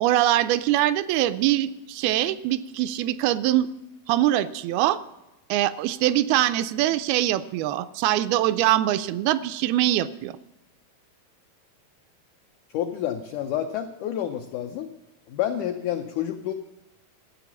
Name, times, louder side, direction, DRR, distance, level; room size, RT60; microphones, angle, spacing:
voice 1, 0.0-3.7 4.1-5.0 5.5-10.3, right 13 dB, 85° right, 12 dB, 2.4 m, -23 dB
voice 2, 12.7-14.9 15.3-16.5, left 10 dB, 85° left, 6 dB, 1.7 m, -29 dB
13.0 x 8.1 x 7.1 m, 0.96 s
omnidirectional pair, 4.4 m